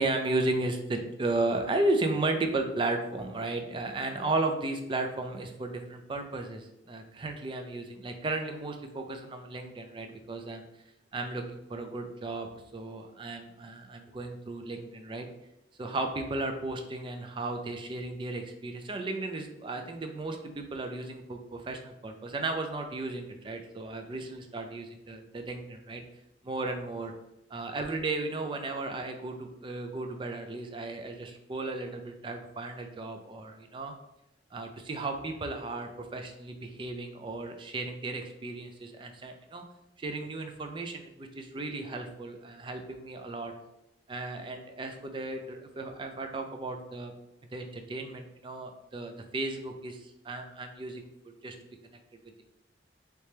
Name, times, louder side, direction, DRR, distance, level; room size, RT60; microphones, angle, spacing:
voice 1, 0.0-10.7 11.1-15.3 15.8-26.0 26.4-27.1 27.5-33.9 34.5-39.6 40.0-43.5 44.1-47.1 47.5-51.1 51.4-51.6 52.2-52.4, right 2 dB, 25° right, 5 dB, 0.4 m, -34 dB
3.2 x 2.9 x 3.2 m, 0.89 s
head